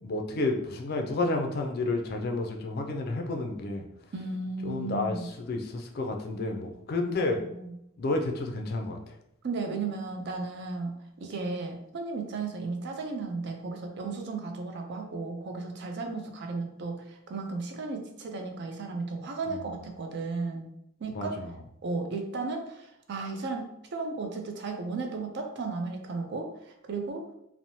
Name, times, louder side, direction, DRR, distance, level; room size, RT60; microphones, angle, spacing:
voice 1, 0.0-3.8 4.7-5.2 5.5-7.4 8.0-9.0 19.5-19.6 21.1-21.5, left 2 dB, 50° left, 3 dB, 0.4 m, -30 dB
voice 2, 4.1-5.3 7.2-7.7 9.4-20.7 21.0-21.4 21.8-27.2, right 3 dB, 60° right, 4 dB, 0.4 m, -35 dB
2.9 x 2.0 x 2.6 m, 0.79 s
head